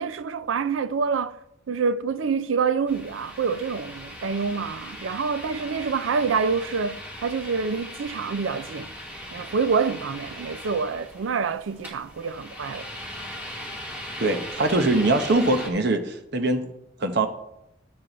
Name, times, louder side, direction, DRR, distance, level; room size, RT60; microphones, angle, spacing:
voice 1, 0.0-1.4 1.7-8.9 9.3-12.9, right 5 dB, 75° right, 0.4 m, -27 dB
sound 1, 2.9-15.7, left 1 dB, 10° right, 1.7 m, -39 dB
voice 2, 14.2-16.7 17.0-17.3, right 2 dB, 55° right, 0.9 m, -22 dB
9.6 x 7.5 x 3.9 m
head